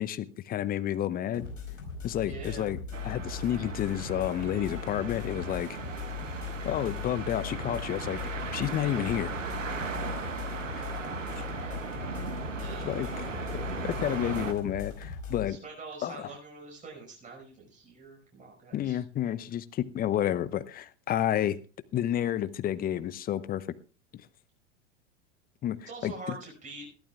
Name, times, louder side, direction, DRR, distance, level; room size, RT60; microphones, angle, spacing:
voice 1, 0.0-1.5 2.0-2.8 3.0-5.7 6.6-9.3 10.7-10.8 11.4-11.5 12.8-13.1 13.8-15.6 16.0-16.3 18.7-21.6 21.9-23.7 25.6-26.4, left 11 dB, 25° left, 15 dB, 0.8 m, -30 dB
sound 1, 1.3-15.5, left 6 dB, 80° left, 5.0 m, -39 dB
voice 2, 2.2-2.7 12.6-12.9 15.5-19.0 25.9-26.9, right 3 dB, 20° right, -2 dB, 5.4 m, -44 dB
sound 2, 2.9-14.5, right 5 dB, 80° right, 1.3 m, -38 dB
21.0 x 14.0 x 2.4 m, 0.36 s
figure-of-eight pair, 85°, 37 cm